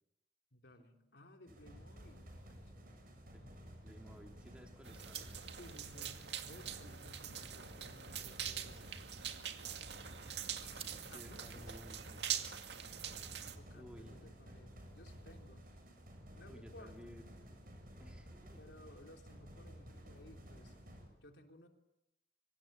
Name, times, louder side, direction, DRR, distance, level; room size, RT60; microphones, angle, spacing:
voice 1, 0.5-3.1 3.4-3.5 4.9-9.0 10.8-11.8 13.5-15.7 16.3-17.2 18.6-20.7 21.2-21.7, left 1 dB, 75° left, 4 dB, 3.4 m, -59 dB
sound 1, 1.5-21.1, equal, 50° right, 7.8 m, -54 dB
sound 2, 3.5-13.8, right 7 dB, 30° right, 2.3 m, -61 dB
voice 2, 3.8-5.4 8.4-8.9 11.1-12.4 13.7-14.2 16.5-17.2 18.0-18.6, equal, 5° right, 4 dB, 2.8 m, -57 dB
sound 3, 4.8-13.6, right 9 dB, 75° right, 2.2 m, -44 dB
26.5 x 24.5 x 8.8 m, 0.85 s
head